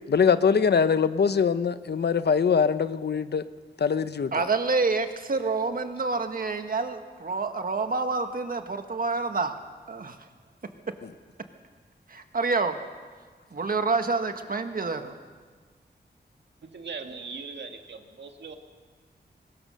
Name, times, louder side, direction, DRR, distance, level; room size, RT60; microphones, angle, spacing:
voice 1, 0.1-3.4 3.8-4.4, left 6 dB, 70° left, 0.8 m, -23 dB
voice 2, 4.3-9.5 9.9-10.2 12.1-12.8 13.5-15.1, right 4 dB, 55° right, 1.6 m, -27 dB
voice 3, 16.7-18.5, right 4 dB, 80° right, 2.0 m, -39 dB
22.5 x 20.5 x 6.5 m
wide cardioid pair, 105°, 18 cm